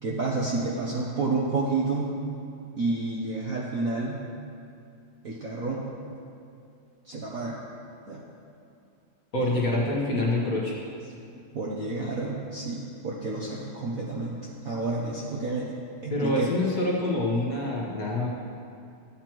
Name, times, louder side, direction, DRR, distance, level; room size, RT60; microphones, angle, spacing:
voice 1, 0.0-2.2 2.8-4.3 5.2-5.9 7.0-7.6 8.1-8.2 9.5-9.6 11.5-14.4 14.6-15.7 16.0-16.5, right 3 dB, 55° right, -4 dB, 0.9 m, -30 dB
voice 2, 9.3-10.7 16.1-18.3, left 1 dB, 45° left, -4 dB, 1.5 m, -26 dB
13.0 x 8.6 x 3.0 m, 2.5 s
omnidirectional pair, 2.3 m